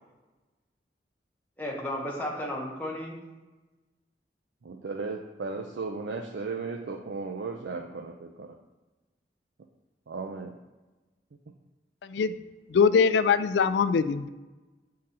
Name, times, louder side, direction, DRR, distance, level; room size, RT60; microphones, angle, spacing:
voice 1, 1.6-3.2, left 1 dB, 10° left, -3 dB, 1.2 m, -33 dB
voice 2, 4.6-8.6 10.1-10.5, right 4 dB, 80° right, 3 dB, 0.5 m, -35 dB
voice 3, 12.0-12.4 12.7-14.3, left 5 dB, 80° left, 13 dB, 0.3 m, -22 dB
7.5 x 3.8 x 4.2 m, 1.2 s
head